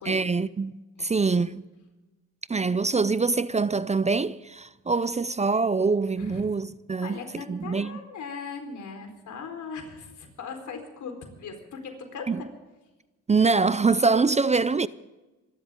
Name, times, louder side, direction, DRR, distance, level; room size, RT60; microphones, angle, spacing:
voice 1, 0.1-1.7 2.5-8.0 12.3-12.4 13.3-14.9, right 4 dB, 25° right, 0.5 m, -24 dB
voice 2, 7.0-12.5, left 5 dB, 75° left, 4.3 m, -39 dB
26.0 x 13.0 x 3.7 m
cardioid pair, 80°, 30 cm